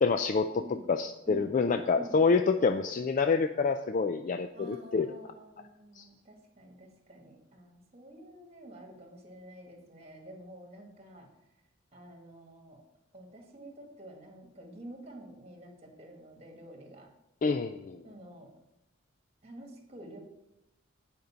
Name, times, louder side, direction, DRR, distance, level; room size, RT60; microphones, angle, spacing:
voice 1, 0.0-0.6 0.9-5.1 6.0-6.1 17.4-18.0, left 4 dB, 40° left, 8 dB, 0.3 m, -27 dB
voice 2, 1.3-1.6 1.9-2.2 4.5-11.3 11.9-12.8 13.1-17.1 18.0-18.5 19.4-20.2, right 1 dB, 30° right, 2 dB, 1.7 m, -49 dB
9.3 x 5.3 x 5.6 m, 0.94 s
head